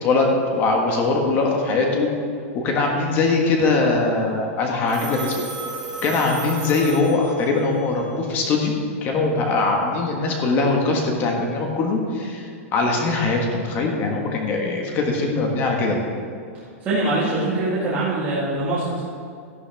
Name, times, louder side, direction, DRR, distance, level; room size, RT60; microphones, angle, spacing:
voice 1, 0.0-2.1 2.5-5.4 6.0-8.7 9.0-12.5 12.7-16.0, left 3 dB, 25° left, 1 dB, 1.4 m, -21 dB
Telephone, 4.9-7.6, right 3 dB, 5° right, 3.0 m, -33 dB
voice 2, 16.5-19.0, right 2 dB, 25° right, -9 dB, 2.0 m, -24 dB
13.0 x 11.5 x 3.5 m, 2.4 s
supercardioid pair, 165°, 8 cm